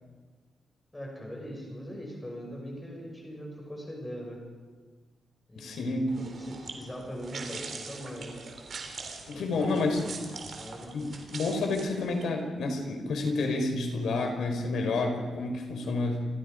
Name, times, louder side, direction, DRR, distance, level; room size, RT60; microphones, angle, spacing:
voice 1, 0.9-4.4 5.5-8.4 9.3-10.1 10.5-11.2, equal, 10° left, -1 dB, 6.4 m, -41 dB
voice 2, 5.5-6.1 9.3-10.0 10.9-16.3, left 3 dB, 80° left, 4 dB, 5.0 m, -29 dB
sound 1, 6.1-12.3, right 4 dB, 50° right, 3.7 m, -43 dB
28.5 x 23.0 x 5.3 m, 1.5 s
wide cardioid pair, 175°, 0 cm